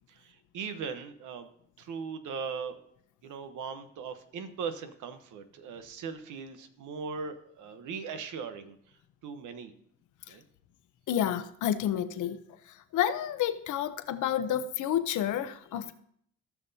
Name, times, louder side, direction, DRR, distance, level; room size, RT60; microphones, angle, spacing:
voice 1, 0.1-1.5 1.8-2.8 3.2-8.8 9.2-9.7 10.3-10.4, right 5 dB, 85° right, 9 dB, 1.0 m, -39 dB
voice 2, 11.1-12.4 12.9-15.9, left 10 dB, 80° left, 11 dB, 0.8 m, -29 dB
16.5 x 5.9 x 2.7 m, 0.66 s
cardioid pair, 90°, 30 cm